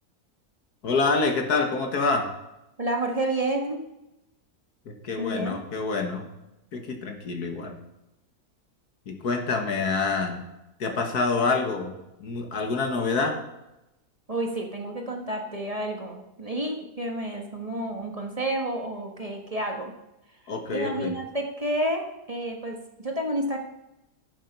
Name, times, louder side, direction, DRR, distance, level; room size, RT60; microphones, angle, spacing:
voice 1, 0.8-2.3 4.9-6.3 6.7-7.7 9.1-10.4 10.8-11.9 12.2-13.4 20.5-21.1, left 4 dB, 80° left, 4 dB, 2.0 m, -26 dB
voice 2, 2.8-3.8 5.2-5.6 14.3-19.9 20.7-22.8 23.0-23.6, right 1 dB, 25° right, 1 dB, 1.3 m, -30 dB
11.5 x 7.4 x 5.4 m, 0.91 s
omnidirectional pair, 1.6 m